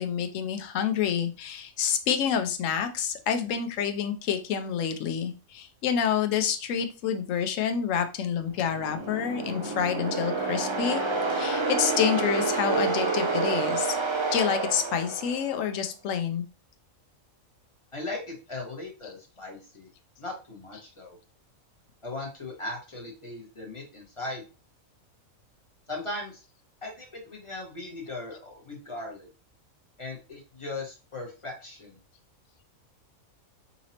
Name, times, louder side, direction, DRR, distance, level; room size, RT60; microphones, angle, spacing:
voice 1, 0.0-11.0 11.3-14.0 14.3-16.4, left 8 dB, 70° left, 7 dB, 1.0 m, -28 dB
sound 1, 8.6-15.6, right 3 dB, 45° right, 0.3 m, -28 dB
voice 2, 17.9-19.9 20.2-21.2 22.0-24.4 25.9-26.4 26.8-29.3 30.0-32.0, left 2 dB, 20° left, -2 dB, 1.3 m, -38 dB
4.0 x 2.9 x 2.8 m, 0.32 s
omnidirectional pair, 1.5 m